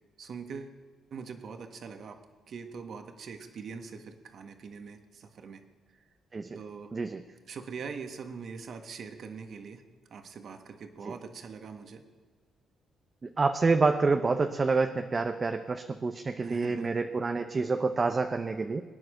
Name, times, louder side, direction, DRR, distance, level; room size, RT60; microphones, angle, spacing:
voice 1, 0.2-0.8 1.1-5.6 6.5-7.0 7.5-9.8 10.1-12.0 16.4-17.0, right 5 dB, 60° right, 6 dB, 1.6 m, -43 dB
voice 2, 13.4-18.8, right 4 dB, 30° right, 6 dB, 0.8 m, -27 dB
23.0 x 9.6 x 6.6 m, 1.4 s
cardioid pair, 90°, 0 cm